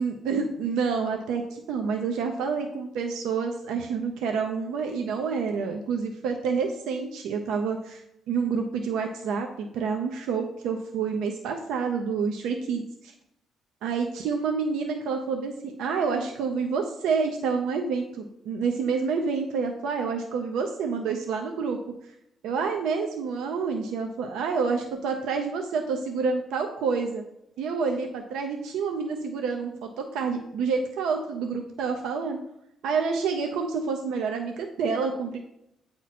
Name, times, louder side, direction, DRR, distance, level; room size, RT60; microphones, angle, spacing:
voice 1, 0.0-8.0 8.3-13.1 13.8-21.8 22.4-27.3 27.6-32.4 32.8-35.4, right 5 dB, 90° right, 3 dB, 0.5 m, -28 dB
8.3 x 2.9 x 4.1 m, 0.81 s
cardioid pair, 90°, 0 cm